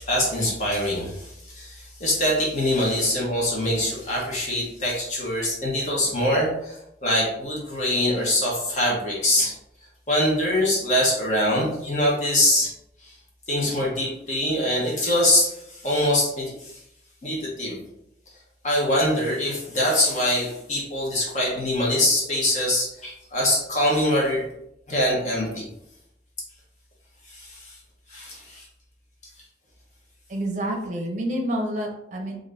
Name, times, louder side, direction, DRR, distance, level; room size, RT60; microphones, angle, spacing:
voice 1, 0.0-6.7 7.0-9.5 10.1-12.7 13.0-13.1 13.5-16.8 17.2-17.8 18.6-24.4 24.9-25.6 27.3-27.7 28.1-28.7, left 1 dB, 40° left, -4 dB, 0.8 m, -23 dB
voice 2, 30.3-32.4, right 1 dB, 40° right, 1 dB, 0.6 m, -28 dB
2.5 x 2.5 x 3.3 m, 0.82 s
head